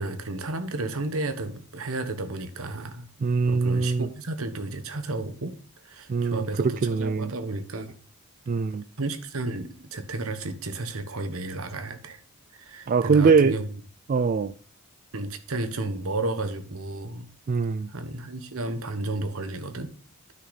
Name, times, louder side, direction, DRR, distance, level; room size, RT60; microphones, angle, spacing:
voice 1, 0.0-3.1 3.5-5.5 5.8-8.0 9.0-12.2 12.5-13.7 15.1-17.3 17.9-19.9, right 2 dB, 65° right, 9 dB, 1.2 m, -32 dB
voice 2, 3.2-4.1 6.1-7.3 8.5-8.8 12.9-13.6 14.1-14.5 17.5-17.9, right 5 dB, 40° right, 12 dB, 0.3 m, -22 dB
9.5 x 6.3 x 4.0 m, 0.40 s
head